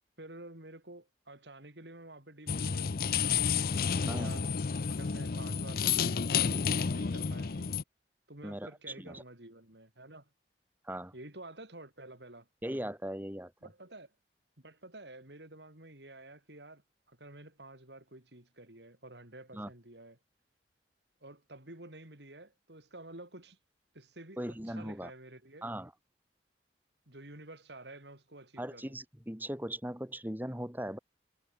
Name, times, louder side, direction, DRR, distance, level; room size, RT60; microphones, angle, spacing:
voice 1, 0.2-3.6 4.1-4.5 4.9-6.3 6.6-7.7 8.3-10.3 11.1-12.5 13.6-14.1 14.6-20.2 21.2-23.6 23.9-25.7 27.1-29.0, right 2 dB, 80° right, 5.4 m, -50 dB
sound 1, 2.5-7.8, left 6 dB, 55° left, 0.6 m, -30 dB
voice 2, 12.6-13.5 19.5-19.7 24.4-25.1 25.6-25.9 28.6-31.0, right 1 dB, 10° right, 2.6 m, -38 dB
head